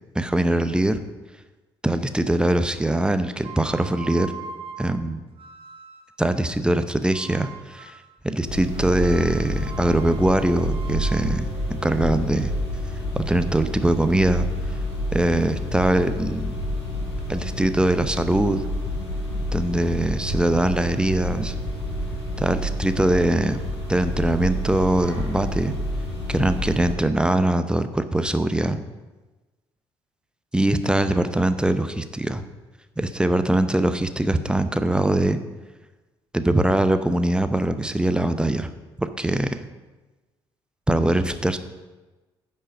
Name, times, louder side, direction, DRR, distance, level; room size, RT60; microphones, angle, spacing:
voice 1, 0.1-1.0 1.8-4.3 4.8-5.2 6.2-7.9 8.2-11.4 11.8-12.5 13.1-14.5 15.1-16.5 17.3-18.6 19.5-21.5 22.4-23.6 23.9-25.7 26.3-28.8 30.5-32.4 33.0-35.4 36.3-38.7 39.0-39.6 40.9-41.6, right 1 dB, 5° right, 10 dB, 0.7 m, -22 dB
sound 1, 3.4-6.2 7.1-8.1 8.7-12.7, right 5 dB, 40° right, 1.1 m, -42 dB
sound 2, 8.5-26.9, equal, 85° left, 1.5 m, -29 dB
9.7 x 5.5 x 6.4 m, 1.2 s
figure-of-eight pair, 45°, 14 cm